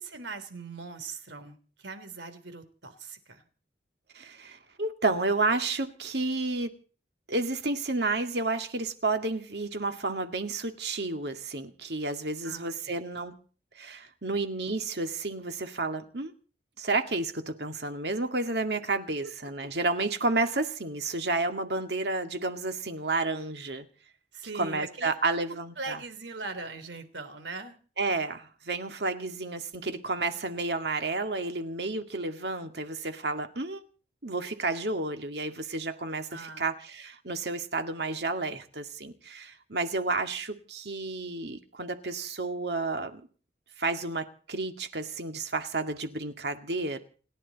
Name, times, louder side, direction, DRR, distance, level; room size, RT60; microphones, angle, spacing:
voice 1, 0.0-3.4 12.4-13.0 19.2-19.3 24.3-25.1 25.8-27.8 36.3-36.7, right 3 dB, 85° right, 9 dB, 3.3 m, -40 dB
voice 2, 4.1-6.7 7.3-13.4 13.8-16.3 16.8-23.9 24.5-26.0 28.0-33.8 34.2-43.2 43.8-47.0, right 3 dB, 65° right, 7 dB, 2.2 m, -31 dB
29.5 x 11.5 x 4.2 m, 0.40 s
head